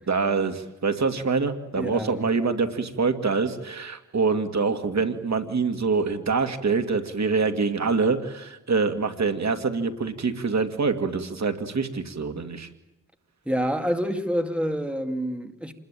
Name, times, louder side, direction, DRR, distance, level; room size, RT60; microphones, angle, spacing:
voice 1, 0.1-12.7, right 4 dB, 65° right, 2.3 m, -25 dB
voice 2, 1.7-2.2 13.5-15.7, equal, 5° right, 2.4 m, -27 dB
28.0 x 21.5 x 9.1 m
wide cardioid pair, 100°, 30 cm